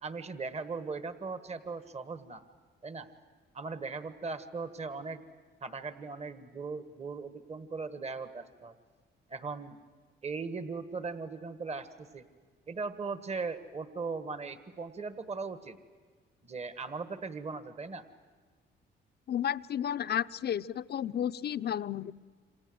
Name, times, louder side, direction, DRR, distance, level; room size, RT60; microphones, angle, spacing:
voice 1, 0.0-2.4 2.8-3.1 3.5-5.2 5.6-8.7 9.3-9.8 10.2-12.2 12.7-15.8 16.4-18.0, right 4 dB, 35° right, 11 dB, 1.5 m, -38 dB
voice 2, 19.3-22.1, left 9 dB, 55° left, 13 dB, 0.7 m, -32 dB
28.0 x 26.0 x 7.9 m, 1.5 s
cardioid pair, 90°, 20 cm